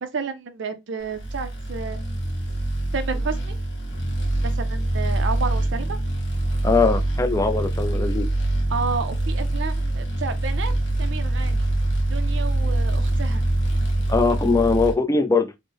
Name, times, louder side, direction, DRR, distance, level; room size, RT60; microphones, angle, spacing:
voice 1, 0.0-2.0 2.9-3.6 4.4-6.0 8.7-10.7 11.0-11.7 12.1-13.4, right 5 dB, 55° right, 0.5 m, -31 dB
sound 1, 1.1-14.9, right 1 dB, 55° left, 0.9 m, -24 dB
voice 2, 6.6-8.3 14.1-15.5, left 4 dB, 15° left, 0.3 m, -21 dB
3.3 x 2.1 x 3.4 m
head